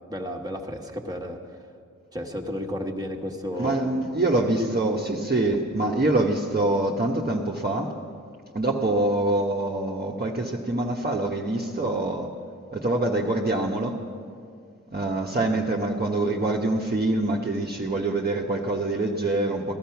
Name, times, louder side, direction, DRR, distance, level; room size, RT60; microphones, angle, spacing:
voice 1, 0.1-1.4 2.1-3.8 4.6-4.8, equal, 10° right, 1 dB, 1.5 m, -32 dB
voice 2, 3.6-8.0 8.5-12.3 12.7-14.0 14.9-19.8, right 2 dB, 30° right, -2 dB, 1.2 m, -25 dB
16.5 x 12.5 x 5.9 m, 2.2 s
cardioid pair, 55°, 31 cm